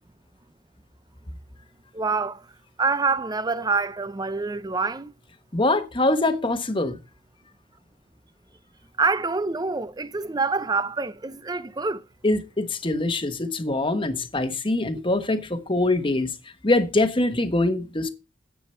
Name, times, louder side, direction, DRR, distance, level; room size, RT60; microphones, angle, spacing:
voice 1, 1.9-2.5 2.8-5.1 9.0-12.0, right 4 dB, 20° right, 0.5 m, -26 dB
voice 2, 5.5-7.0 12.2-16.3 16.6-18.1, left 2 dB, 25° left, 1.2 m, -23 dB
10.0 x 8.5 x 4.3 m
head